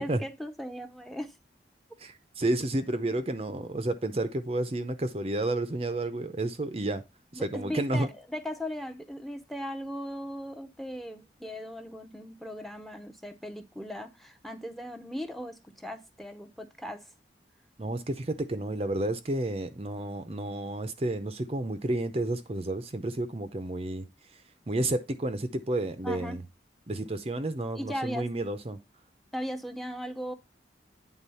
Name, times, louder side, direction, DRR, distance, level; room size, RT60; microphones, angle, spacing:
voice 1, 0.0-1.4 7.3-17.1 26.0-26.4 27.7-28.3 29.3-30.3, equal, ahead, 0.7 m, -38 dB
voice 2, 2.0-7.0 7.3-8.1 17.8-24.1 24.7-26.4 26.9-28.8, right 1 dB, 35° right, 0.6 m, -31 dB
9.2 x 3.8 x 5.5 m
head